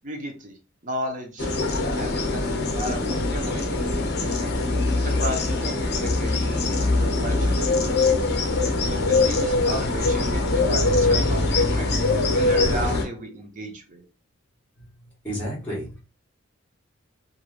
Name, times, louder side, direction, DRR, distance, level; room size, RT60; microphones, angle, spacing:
voice 1, 0.0-0.6 0.8-1.5 1.9-4.6 4.9-6.7 7.0-8.4 8.9-11.9 12.3-14.1, right 1 dB, 40° right, 4 dB, 0.6 m, -34 dB
sound 1, 1.4-13.0, left 3 dB, 55° left, 0.6 m, -23 dB
voice 2, 14.7-16.0, equal, 10° left, -7 dB, 1.4 m, -34 dB
3.1 x 2.5 x 2.4 m, 0.32 s
head